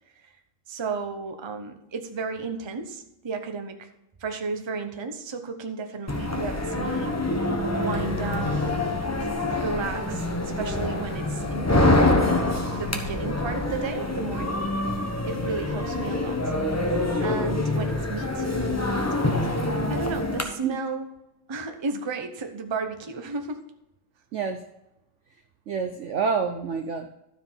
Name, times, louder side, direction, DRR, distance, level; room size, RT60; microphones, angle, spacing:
voice 1, 0.7-3.9 4.2-11.8 12.2-12.4 12.8-16.5 17.2-18.5 18.9-19.4 19.9-21.1 21.5-23.6, right 4 dB, 30° right, 6 dB, 0.5 m, -34 dB
sound 1, 6.1-20.4, left 2 dB, 15° left, 0.7 m, -25 dB
voice 2, 24.3-24.7 25.7-27.1, right 5 dB, 70° right, 7 dB, 0.7 m, -28 dB
12.5 x 4.9 x 5.6 m, 0.89 s
omnidirectional pair, 2.0 m